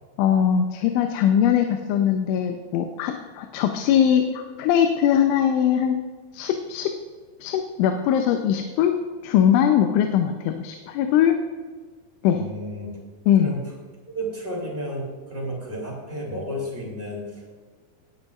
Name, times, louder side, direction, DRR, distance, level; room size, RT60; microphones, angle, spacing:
voice 1, 0.2-6.0 6.3-7.0 7.4-9.0 9.2-11.4 12.2-12.4 13.3-13.5, left 9 dB, 85° left, 5 dB, 3.1 m, -21 dB
voice 2, 12.3-13.0 13.3-13.6 14.1-17.5, equal, 15° right, -3 dB, 2.1 m, -32 dB
18.0 x 10.5 x 2.4 m, 1.5 s
omnidirectional pair, 5.4 m